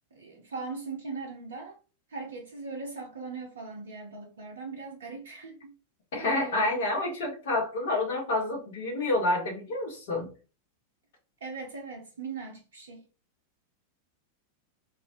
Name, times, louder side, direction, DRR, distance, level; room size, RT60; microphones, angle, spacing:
voice 1, 0.1-1.8 2.1-5.7 6.3-6.8 11.4-13.1, right 4 dB, 65° right, 0.5 m, -39 dB
voice 2, 6.1-10.3, left 2 dB, 55° left, 0.7 m, -28 dB
2.3 x 2.0 x 2.6 m
figure-of-eight pair, 90°, 0 cm